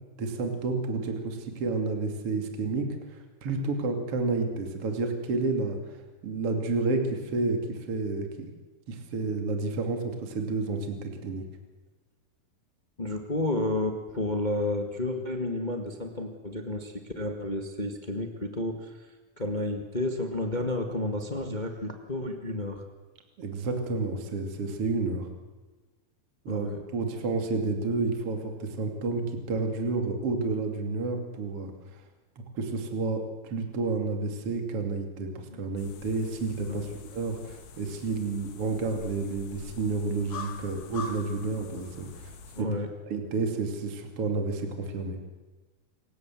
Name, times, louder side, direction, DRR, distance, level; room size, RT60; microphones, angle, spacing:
voice 1, 0.2-6.0 6.2-8.5 8.9-11.4 23.4-25.3 26.4-31.7 32.5-42.7 43.1-45.2, right 3 dB, 40° right, 4 dB, 3.2 m, -30 dB
voice 2, 13.0-19.1 19.4-22.8 26.5-26.8 36.7-36.8 42.5-42.9, left 1 dB, 30° left, 4 dB, 0.8 m, -31 dB
sound 1, 35.8-42.6, left 5 dB, 75° left, 3.5 m, -44 dB
27.5 x 15.5 x 7.7 m, 1.3 s
omnidirectional pair, 4.3 m